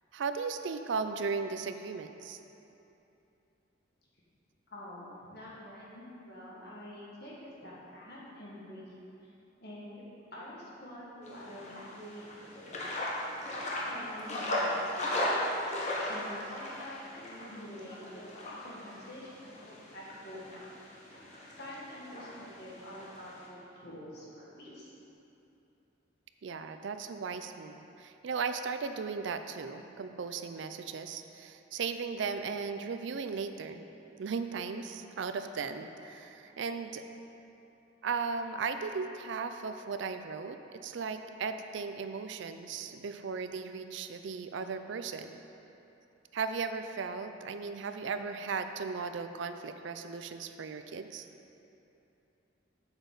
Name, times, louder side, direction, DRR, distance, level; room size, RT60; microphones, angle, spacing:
voice 1, 0.1-2.4 26.4-33.8 34.2-37.0 38.0-45.4 46.3-51.3, right 5 dB, 65° right, 9 dB, 0.4 m, -36 dB
voice 2, 4.7-8.9 9.6-10.0 10.3-12.3 13.9-15.3 16.1-20.7 21.6-24.9, left 1 dB, 55° left, -6 dB, 1.8 m, -47 dB
sound 1, 11.2-23.5, left 1 dB, 40° left, 1.2 m, -37 dB
8.0 x 7.0 x 4.0 m, 2.9 s
head